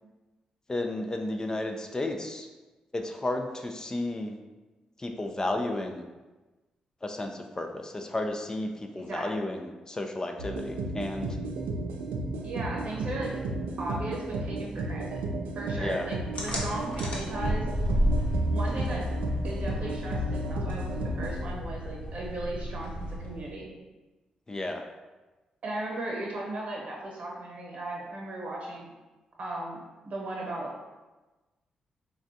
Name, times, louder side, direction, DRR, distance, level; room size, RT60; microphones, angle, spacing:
voice 1, 0.7-2.5 2.9-4.4 5.0-6.1 7.0-11.4 15.8-16.1 24.5-24.8, left 2 dB, 25° left, 4 dB, 0.3 m, -33 dB
voice 2, 9.0-9.4 12.4-13.3 13.8-15.2 15.5-17.7 18.5-19.1 19.4-23.7 25.6-28.9 29.4-29.8 30.0-30.7, right 1 dB, 60° right, -2 dB, 0.9 m, -36 dB
sound 1, 10.4-21.4, right 2 dB, 90° right, 0.3 m, -34 dB
sound 2, 16.4-23.5, equal, 55° left, 0.8 m, -31 dB
3.3 x 2.3 x 2.6 m, 1.2 s
supercardioid pair, 55°, 3 cm